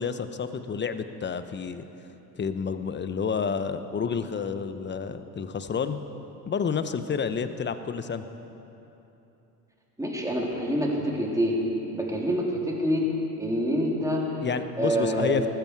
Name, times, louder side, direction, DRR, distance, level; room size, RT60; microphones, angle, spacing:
voice 1, 0.0-1.8 2.4-6.0 6.5-8.2 14.4-15.5, left 6 dB, 25° left, 10 dB, 0.9 m, -29 dB
voice 2, 10.0-11.6 11.9-13.1 13.4-14.3 14.8-15.5, equal, 5° right, -2 dB, 3.4 m, -26 dB
19.5 x 14.0 x 4.7 m, 3.0 s
hypercardioid pair, 70°, 48 cm